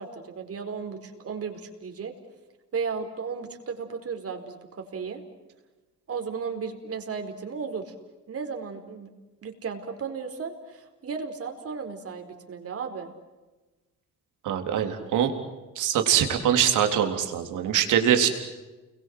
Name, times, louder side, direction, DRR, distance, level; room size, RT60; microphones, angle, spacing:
voice 1, 0.0-2.1 2.7-5.2 6.1-7.9 8.3-9.1 9.4-13.1 14.8-15.1, right 5 dB, 50° right, 5 dB, 4.6 m, -35 dB
voice 2, 14.4-15.3 15.8-18.3, right 9 dB, 85° right, 5 dB, 3.8 m, -23 dB
30.0 x 22.5 x 7.9 m, 1.2 s
cardioid pair, 90°, 30 cm